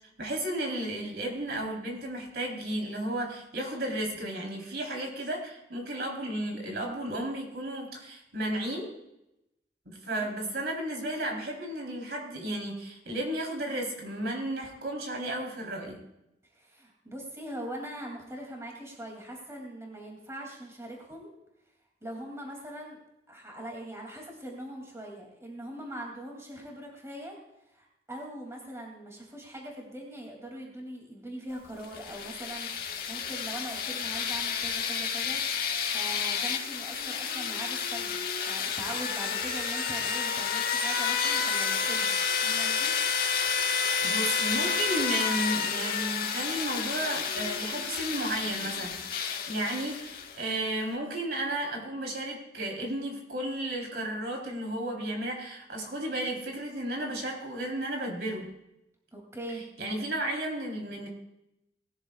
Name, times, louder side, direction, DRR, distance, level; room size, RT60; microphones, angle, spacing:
voice 1, 0.2-8.9 9.9-16.0 44.0-49.0 49.5-58.5 59.8-61.1, right 1 dB, 65° right, 0 dB, 4.0 m, -33 dB
voice 2, 16.5-21.3 22.0-23.0 23.3-27.4 27.7-38.2 38.5-42.9 59.1-59.7, right 1 dB, 15° right, 0 dB, 2.9 m, -42 dB
sound 1, 31.8-50.5, left 6 dB, 55° left, 1.6 m, -30 dB
19.5 x 13.0 x 2.5 m, 0.87 s
head